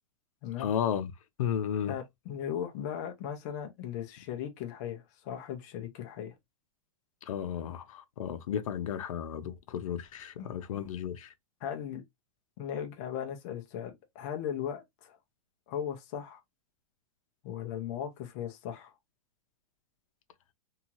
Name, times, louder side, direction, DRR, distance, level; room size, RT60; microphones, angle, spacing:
voice 1, 0.6-1.1 1.4-1.9 7.3-11.3, left 9 dB, 85° left, 0.6 m, -33 dB
voice 2, 1.9-6.3 10.4-10.6 11.6-12.0 12.6-15.2 15.7-16.4 17.4-18.9, left 9 dB, 30° left, 0.5 m, -37 dB
2.8 x 2.3 x 2.8 m
supercardioid pair, 175°, 17 cm